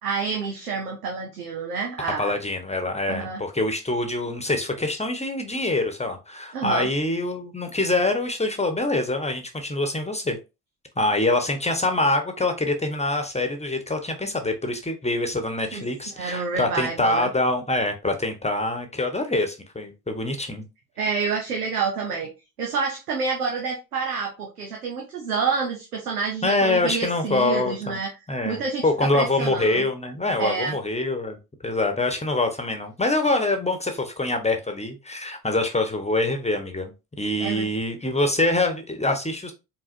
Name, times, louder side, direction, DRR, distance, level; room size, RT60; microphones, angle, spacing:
voice 1, 0.0-2.4 3.1-3.4 6.5-6.9 15.7-15.8 16.1-17.3 21.0-22.3 22.6-28.1 28.4-29.9 30.4-30.8 37.4-37.7, right 5 dB, 90° right, 0.7 m, -28 dB
voice 2, 2.2-10.4 11.0-20.6 26.4-28.0 28.3-31.4 31.6-36.9 37.2-39.5, left 2 dB, 15° left, 1.0 m, -25 dB
4.9 x 3.6 x 2.6 m
figure-of-eight pair, 45°, 44 cm